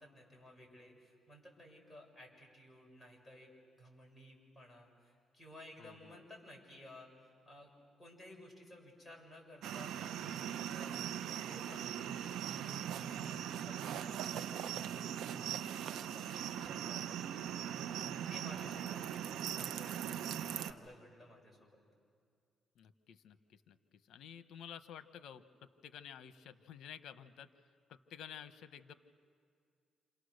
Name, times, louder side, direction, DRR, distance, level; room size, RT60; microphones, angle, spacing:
voice 1, 0.0-7.1 7.5-7.7 8.0-12.4 13.0-17.5 18.0-20.2 20.5-21.8, left 1 dB, 10° left, -1 dB, 7.1 m, -56 dB
voice 2, 5.8-6.2 13.3-13.7 18.7-19.1 22.8-23.8 24.1-27.5 27.9-28.9, left 9 dB, 75° left, 11 dB, 1.1 m, -52 dB
sound 1, 9.6-20.7, right 10 dB, 80° right, 0.8 m, -40 dB
28.5 x 27.5 x 6.6 m, 2.2 s
cardioid pair, 90°, 0 cm